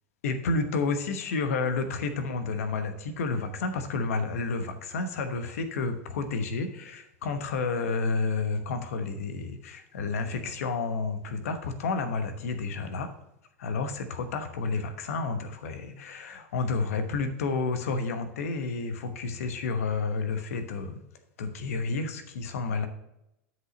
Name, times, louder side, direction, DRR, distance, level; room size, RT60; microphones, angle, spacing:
voice 1, 0.2-13.1 13.6-21.0 21.4-22.9, left 4 dB, 80° left, 8 dB, 1.0 m, -30 dB
9.5 x 5.3 x 3.9 m, 0.84 s
hypercardioid pair, 100°, 8 cm